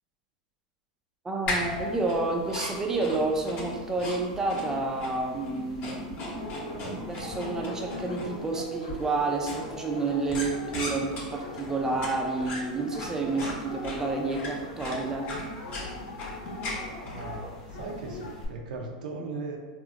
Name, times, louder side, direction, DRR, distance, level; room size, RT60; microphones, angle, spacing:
voice 1, 1.2-15.3, right 3 dB, 10° right, 1 dB, 0.4 m, -30 dB
sound 1, 1.5-18.5, left 1 dB, 35° left, 0.8 m, -38 dB
Dog, 6.1-18.3, left 2 dB, 80° left, 0.8 m, -41 dB
voice 2, 16.9-19.6, right 3 dB, 85° right, 1 dB, 0.5 m, -38 dB
2.8 x 2.0 x 3.5 m, 1.3 s
hypercardioid pair, 125°, 4 cm